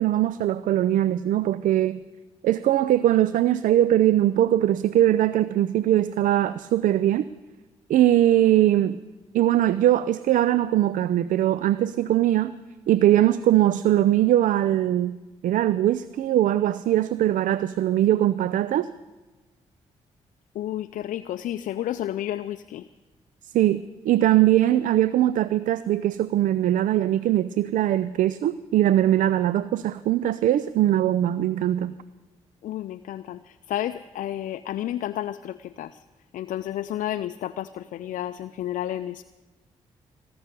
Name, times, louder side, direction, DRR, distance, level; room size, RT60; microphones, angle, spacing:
voice 1, 0.0-2.0 2.4-7.3 7.9-9.0 9.3-12.5 12.9-15.2 15.4-18.9 23.4-31.9, right 12 dB, 70° right, 16 dB, 0.4 m, -21 dB
voice 2, 20.5-22.9 32.6-36.0 36.3-39.2, left 12 dB, 65° left, 11 dB, 0.4 m, -31 dB
18.5 x 6.9 x 9.4 m, 1.2 s
hypercardioid pair, 45°, 14 cm